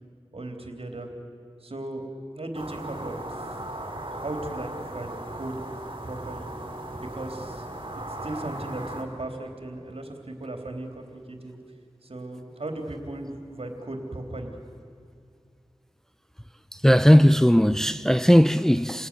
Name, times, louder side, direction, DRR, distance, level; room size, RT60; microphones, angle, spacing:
voice 1, 0.3-1.1 1.6-2.1 2.3-3.4 4.1-5.6 6.0-6.5 7.0-7.7 8.2-11.6 12.0-14.5, right 2 dB, 70° right, 3.5 m, -36 dB
sound 1, 2.5-9.0, right 1 dB, 55° right, 4.3 m, -37 dB
voice 2, 16.8-19.1, equal, 5° left, 0.6 m, -17 dB
29.0 x 18.5 x 9.9 m
wide cardioid pair, 50°, 10 cm